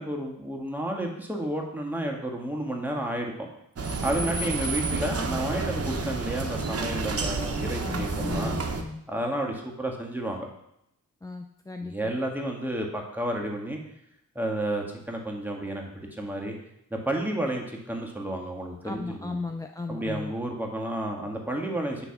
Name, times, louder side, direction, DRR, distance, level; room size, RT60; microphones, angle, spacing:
voice 1, 0.0-3.3 4.0-8.5 9.1-10.5 11.8-13.8 14.3-16.6 16.9-19.4 19.9-22.1, right 1 dB, 5° right, 0 dB, 1.5 m, -31 dB
sound 1, 3.8-8.8, right 3 dB, 45° right, 0.9 m, -30 dB
voice 2, 7.8-9.1 11.2-11.9 18.8-20.3, left 3 dB, 10° left, 4 dB, 0.4 m, -36 dB
9.2 x 3.3 x 5.8 m, 0.79 s
cardioid pair, 70°, 34 cm